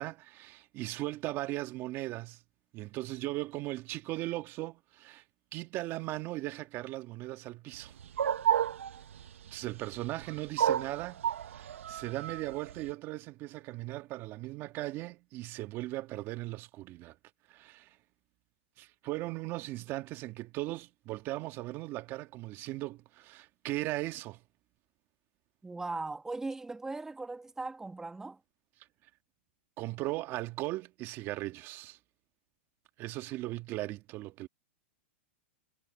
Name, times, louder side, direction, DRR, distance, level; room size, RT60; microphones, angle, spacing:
voice 1, 0.0-2.4 2.7-5.2 5.5-7.9 9.5-17.2 17.5-18.0 18.8-24.4 29.8-32.0 33.0-34.5, right 18 dB, 35° right, 1.8 m, -38 dB
sound 1, 7.8-12.9, right 10 dB, 80° right, 1.4 m, -31 dB
voice 2, 25.6-28.4, right 3 dB, 5° right, 2.0 m, -39 dB
hypercardioid pair, 140°, 7 cm